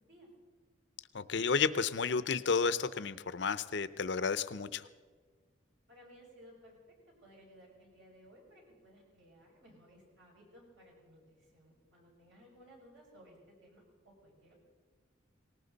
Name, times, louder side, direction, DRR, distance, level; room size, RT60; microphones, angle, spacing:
voice 1, 1.1-4.9, left 5 dB, 60° left, 14 dB, 0.6 m, -32 dB
voice 2, 5.9-6.8 7.2-14.5, equal, 70° right, -2 dB, 6.0 m, -59 dB
19.0 x 18.5 x 4.0 m, 1.5 s
head